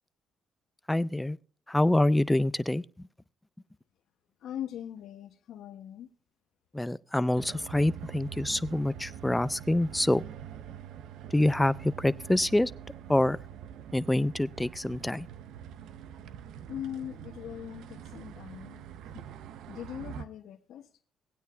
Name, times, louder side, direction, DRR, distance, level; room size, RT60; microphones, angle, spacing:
voice 1, 0.9-1.4 1.7-3.1 6.7-10.2 11.3-12.7 13.1-13.4 13.9-15.3, left 1 dB, 10° left, 0.4 m, -26 dB
voice 2, 4.4-6.1 16.7-18.8 19.1-19.3 19.7-20.9, left 10 dB, 75° left, 0.7 m, -41 dB
sound 1, 7.3-20.3, right 9 dB, 85° right, 0.5 m, -44 dB
18.5 x 9.2 x 2.2 m
cardioid pair, 90°, 0 cm